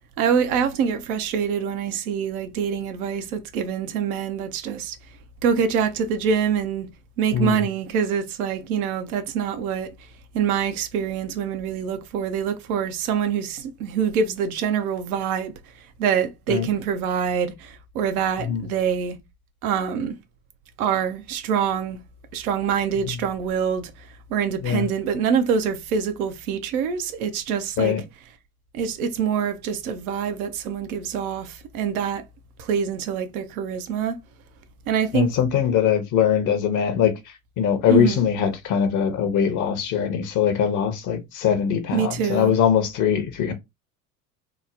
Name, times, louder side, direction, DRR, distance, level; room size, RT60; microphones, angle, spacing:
voice 1, 0.2-5.0 5.4-6.9 7.2-10.1 10.3-19.2 19.6-20.2 20.8-22.0 22.3-28.0 28.7-32.2 32.6-34.2 34.9-35.3 37.9-38.2 41.9-42.5, right 7 dB, 65° right, 0.6 m, -25 dB
voice 2, 7.3-7.6 16.5-16.7 18.4-18.6 24.6-24.9 27.8-28.0 35.1-37.1 37.6-43.5, left 8 dB, 40° left, 0.7 m, -21 dB
3.0 x 2.0 x 2.4 m
hypercardioid pair, 75°, 47 cm